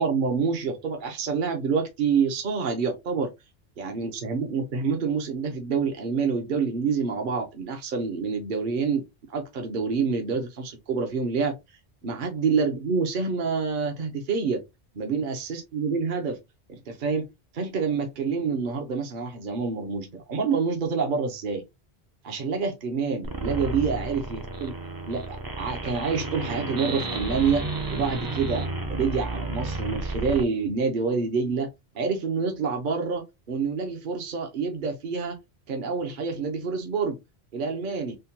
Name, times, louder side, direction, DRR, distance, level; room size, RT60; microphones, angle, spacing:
voice 1, 0.0-3.3 3.8-9.0 9.3-11.5 12.0-14.6 15.0-16.4 16.7-17.2 17.5-21.6 22.2-24.7 25.1-27.6 27.9-31.7 31.9-35.4 35.7-37.2 37.5-38.2, right 5 dB, 55° right, 0.8 m, -27 dB
sound 1, 23.2-30.4, right 2 dB, 35° right, 0.4 m, -32 dB
3.6 x 2.1 x 2.7 m
omnidirectional pair, 1.1 m